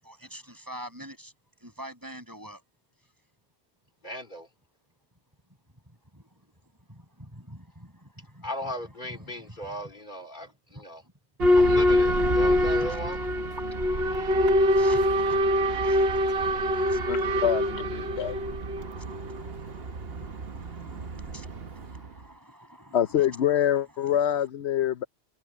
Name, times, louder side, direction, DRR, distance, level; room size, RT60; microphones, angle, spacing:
voice 1, 0.0-2.6 3.0-3.1 5.7-9.9 10.5-11.1 11.7-11.8 12.1-13.4 13.7-17.5 18.1-24.4, equal, 20° right, 8.1 m, -48 dB
voice 2, 4.0-4.5 8.4-11.0 11.6-13.2, equal, 45° left, 2.6 m, -37 dB
Boat Water vehicle / Alarm, 11.4-22.1, equal, 60° right, 1.4 m, -25 dB
voice 3, 17.1-18.4 22.9-25.0, left 10 dB, 75° left, 0.9 m, -26 dB
omnidirectional pair, 1.1 m